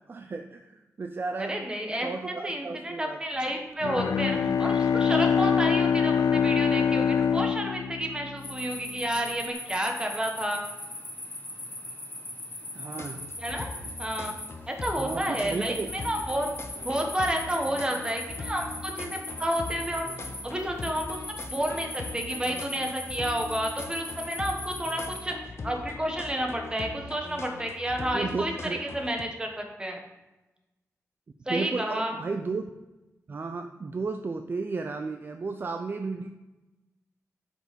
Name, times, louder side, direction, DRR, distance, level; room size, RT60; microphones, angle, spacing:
voice 1, 0.1-1.6 2.0-3.2 12.7-13.2 15.0-15.9 28.1-28.8 31.5-32.6 33.3-36.3, right 4 dB, 40° right, 6 dB, 0.4 m, -33 dB
voice 2, 1.4-10.6 13.4-13.7 14.0-14.3 14.7-16.5 16.8-20.1 20.4-28.5 28.8-30.0 31.5-32.2, right 1 dB, 15° right, 3 dB, 1.2 m, -31 dB
Bowed string instrument, 3.8-8.8, left 7 dB, 90° left, 0.4 m, -24 dB
sound 1, 8.4-25.2, left 1 dB, 30° left, 1.6 m, -40 dB
sound 2, 13.0-29.2, left 3 dB, 50° left, 0.8 m, -41 dB
7.8 x 5.2 x 5.1 m, 1.1 s
wide cardioid pair, 145°, 6 cm